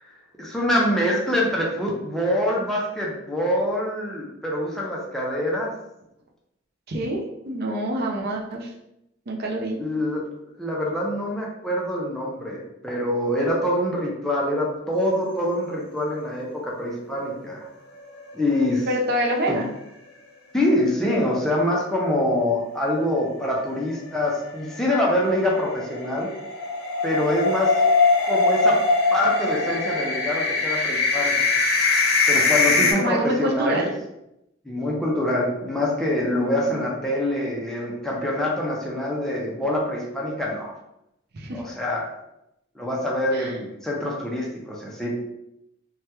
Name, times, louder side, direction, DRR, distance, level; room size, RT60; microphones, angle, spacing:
voice 1, 0.4-5.7 9.8-10.2 10.6-17.7 18.3-18.9 19.5-19.6 20.5-26.3 27.0-27.7 28.3-28.8 29.1-31.3 32.3-33.9 34.6-40.8 41.5-42.1 42.8-45.1, left 1 dB, 5° left, -4 dB, 0.5 m, -25 dB
voice 2, 6.9-8.7 9.3-9.8 18.9-19.7 32.7-33.9 36.4-36.9 41.3-41.6 43.3-43.6, right 1 dB, 50° right, -1 dB, 0.5 m, -26 dB
sound 1, 18.0-18.9 19.2-19.3 19.7-19.8 23.9-32.9, left 3 dB, 55° left, 0.8 m, -22 dB
3.3 x 2.2 x 2.9 m, 0.84 s
head